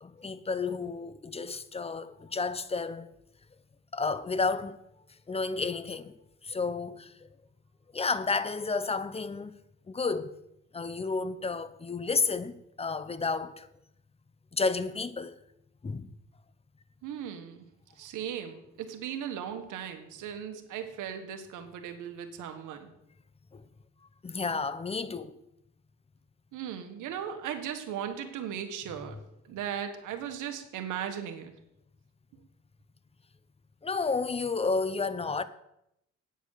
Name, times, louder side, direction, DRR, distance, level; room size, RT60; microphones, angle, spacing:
voice 1, 0.0-3.1 3.9-4.8 5.3-6.1 6.4-7.3 7.9-9.5 9.9-10.4 10.7-13.7 14.5-15.4 15.8-16.1 23.5-23.6 24.2-25.4 33.8-35.4, left 4 dB, 20° left, 0.7 m, -31 dB
voice 2, 17.0-17.7 18.0-22.9 26.5-29.2 29.5-31.5, right 9 dB, 85° right, 1.6 m, -37 dB
9.0 x 8.2 x 6.6 m
cardioid pair, 90°, 30 cm